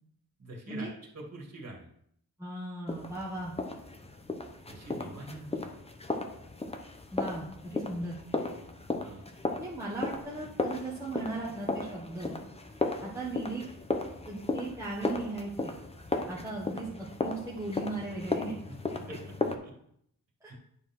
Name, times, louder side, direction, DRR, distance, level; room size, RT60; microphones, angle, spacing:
voice 1, 0.4-1.9 4.7-5.8 8.9-9.3 10.4-10.5 19.1-19.7 20.5-20.6, right 2 dB, 40° right, -2 dB, 2.5 m, -45 dB
voice 2, 2.4-3.5 7.1-8.2 9.5-12.4 13.0-13.6 14.2-15.8 16.3-18.6 20.4-20.5, right 2 dB, 10° right, -6 dB, 1.6 m, -37 dB
sound 1, 2.9-19.5, left 2 dB, 15° left, 0.8 m, -36 dB
9.9 x 4.3 x 5.8 m, 0.69 s
wide cardioid pair, 135°, 37 cm